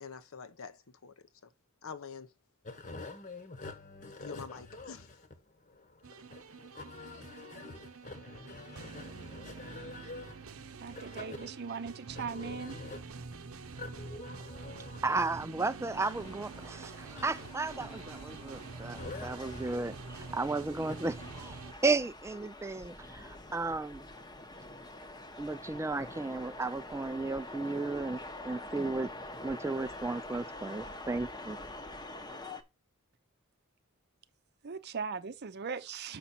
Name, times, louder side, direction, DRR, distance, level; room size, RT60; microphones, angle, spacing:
voice 1, 0.0-1.5 1.8-2.3 4.2-5.1, left 6 dB, 75° left, 0.8 m, -46 dB
sound 1, 2.6-21.3, left 3 dB, 40° left, 1.1 m, -47 dB
sound 2, 6.0-21.7, right 4 dB, 90° right, 0.8 m, -47 dB
voice 2, 10.8-12.8 34.6-36.2, right 5 dB, 50° right, 0.6 m, -39 dB
voice 3, 15.0-24.1 25.4-29.1 29.4-31.6, right 3 dB, 15° right, 0.3 m, -34 dB
sound 3, 15.9-32.6, left 2 dB, 20° left, 0.8 m, -46 dB
6.9 x 5.7 x 4.3 m
head